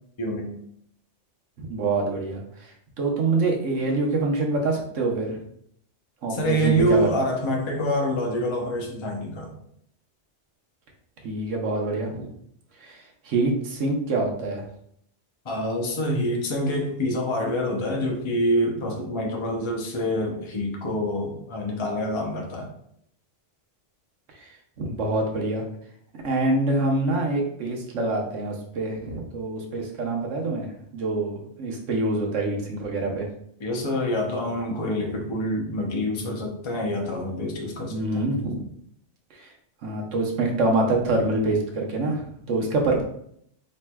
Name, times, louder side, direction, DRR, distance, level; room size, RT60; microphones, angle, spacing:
voice 1, 0.2-0.5 6.3-9.5 15.4-22.7 33.6-38.0 42.6-42.7, equal, 30° left, 0 dB, 0.6 m, -26 dB
voice 2, 1.6-5.4 6.2-7.1 11.2-12.3 12.8-14.6 24.4-24.5 24.8-25.6 26.2-33.3 37.9-38.6 39.3-39.5 39.8-43.0, right 2 dB, 85° right, 0 dB, 1.2 m, -26 dB
4.4 x 3.1 x 2.2 m, 0.69 s
omnidirectional pair, 1.2 m